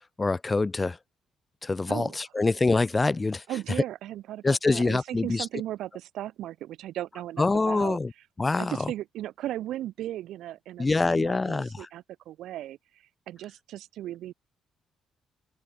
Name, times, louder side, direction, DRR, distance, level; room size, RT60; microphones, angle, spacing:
voice 1, 0.2-1.0 1.6-3.4 4.4-5.5 7.4-8.1 8.4-8.9 10.8-11.9, left 3 dB, 25° left, 2.2 m, -25 dB
voice 2, 3.5-8.0 8.6-14.3, right 13 dB, 75° right, 1.7 m, -37 dB
open air
supercardioid pair, 65°, 0 cm